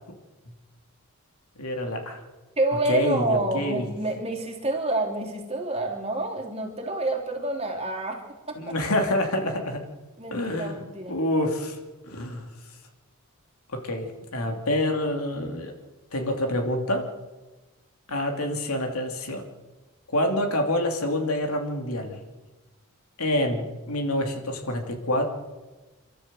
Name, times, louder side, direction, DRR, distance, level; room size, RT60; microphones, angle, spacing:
voice 1, 1.6-2.2 2.9-3.8 8.5-9.8 10.3-10.8 11.1-11.8 12.0-12.4 13.7-15.7 16.1-17.1 18.1-19.4 20.1-22.2 23.2-25.3, left 1 dB, 85° left, 4 dB, 2.9 m, -27 dB
voice 2, 2.6-8.2 8.5-8.7 10.2-11.2, right 2 dB, 25° right, 1 dB, 3.2 m, -28 dB
28.0 x 12.5 x 7.7 m, 1.2 s
head